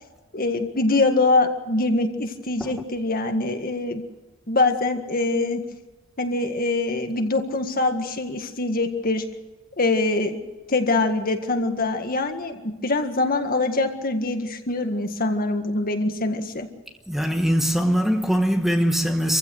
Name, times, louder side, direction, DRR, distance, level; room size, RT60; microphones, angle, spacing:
voice 1, 0.3-4.0 4.5-5.6 6.2-9.2 9.8-10.4 10.7-16.7, left 2 dB, 45° left, 1.8 m, -24 dB
voice 2, 17.1-19.4, equal, ahead, 1.1 m, -22 dB
26.5 x 15.5 x 6.5 m
head